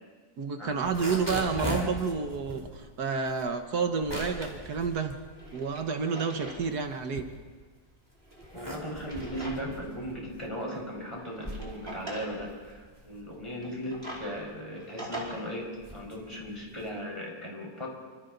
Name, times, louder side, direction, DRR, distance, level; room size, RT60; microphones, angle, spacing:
voice 1, 0.4-5.1 5.5-7.2, right 5 dB, 80° right, 6 dB, 1.8 m, -30 dB
sound 1, 0.7-6.0 6.4-7.8 8.3-17.0, equal, 10° right, 3.7 m, -40 dB
Drawer open or close, 5.2-6.7 7.0-7.1 8.2-9.9 10.3-10.4 11.1-12.3 13.5-15.2, right 1 dB, 40° right, 4.8 m, -43 dB
voice 2, 8.5-17.9, equal, 20° left, -1 dB, 5.3 m, -37 dB
28.0 x 26.5 x 4.0 m, 1.5 s
omnidirectional pair, 1.7 m